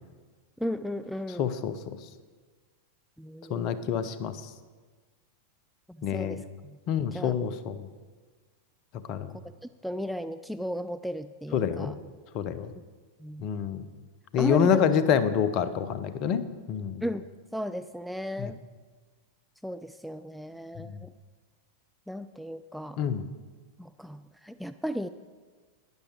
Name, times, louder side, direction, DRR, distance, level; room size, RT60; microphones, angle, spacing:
voice 1, 0.6-1.5 3.2-3.8 6.0-6.8 7.1-7.3 9.8-12.0 13.2-13.4 14.4-14.8 17.0-17.2 17.5-18.6 19.6-21.1 22.1-23.0 23.8-25.1, equal, ahead, 9 dB, 0.3 m, -35 dB
voice 2, 1.4-1.7 3.5-4.4 6.0-6.4 6.9-7.9 9.1-9.3 11.5-11.9 12.3-12.7 13.4-13.8 14.3-17.0 18.4-18.5 20.8-21.0 23.0-23.2, left 8 dB, 40° left, 13 dB, 0.8 m, -27 dB
12.0 x 10.0 x 4.7 m, 1.4 s
figure-of-eight pair, 90°, 0 cm